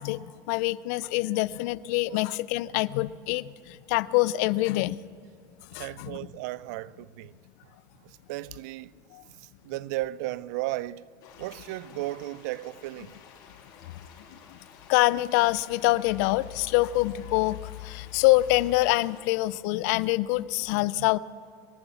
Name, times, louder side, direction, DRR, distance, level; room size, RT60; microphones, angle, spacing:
voice 1, 0.0-5.0 5.7-6.2 9.1-9.2 14.9-21.2, left 18 dB, 70° left, 0.4 m, -25 dB
voice 2, 5.7-7.4 8.0-8.9 9.4-11.1 11.4-13.2, right 17 dB, 70° right, 0.4 m, -35 dB
sound 1, 11.2-19.2, left 6 dB, 50° left, 3.1 m, -52 dB
22.0 x 9.2 x 7.1 m
supercardioid pair, 140°, 9 cm